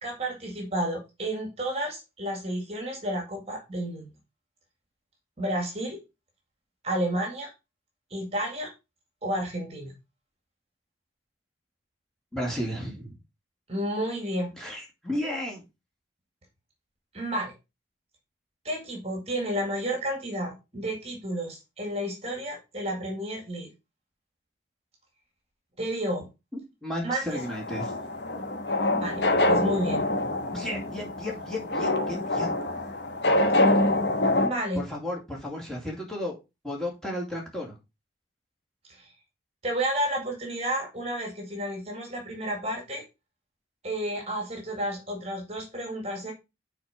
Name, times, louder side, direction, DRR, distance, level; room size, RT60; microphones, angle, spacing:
voice 1, 0.0-4.1 5.4-6.0 6.8-7.5 8.1-8.7 9.2-9.9 13.7-14.5 17.1-17.5 18.6-23.7 25.8-26.3 27.0-27.4 28.9-30.1 34.4-34.8 38.9-39.1 39.6-43.0 43.8-46.3, right 1 dB, 30° right, 2.0 m, -31 dB
voice 2, 12.3-13.2 14.6-15.6 26.5-27.9 30.5-32.5 34.7-36.3 36.6-37.8, left 1 dB, 5° left, 2.3 m, -33 dB
sound 1, 27.3-34.5, left 2 dB, 60° left, 1.2 m, -25 dB
6.6 x 4.3 x 5.0 m
head